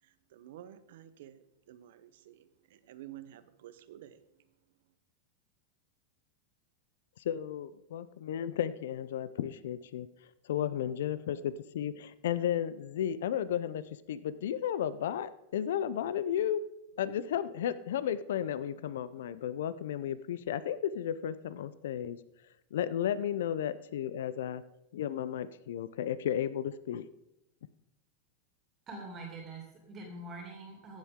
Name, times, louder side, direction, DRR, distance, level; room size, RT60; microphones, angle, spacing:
voice 1, 0.0-4.5, right 12 dB, 70° right, 13 dB, 0.9 m, -51 dB
voice 2, 7.2-10.1 10.4-13.8 14.1-16.6 17.0-22.2 22.7-24.6 24.9-27.1, left 10 dB, 80° left, 15 dB, 0.5 m, -33 dB
voice 3, 28.9-31.0, right 2 dB, 30° right, 1 dB, 2.6 m, -44 dB
15.5 x 7.4 x 3.6 m, 0.88 s
supercardioid pair, 140°, 0 cm